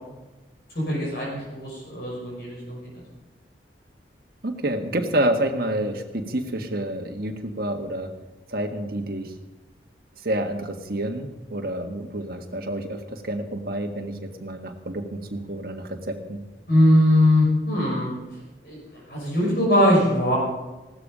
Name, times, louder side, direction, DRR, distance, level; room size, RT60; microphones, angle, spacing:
voice 1, 0.7-2.8 16.7-18.1 18.6-18.8 19.1-20.4, left 1 dB, 60° left, -4 dB, 5.7 m, -20 dB
voice 2, 4.4-8.1 8.5-9.3 10.2-16.4, right 1 dB, 55° right, 4 dB, 1.6 m, -28 dB
16.5 x 13.0 x 5.1 m, 1.1 s
head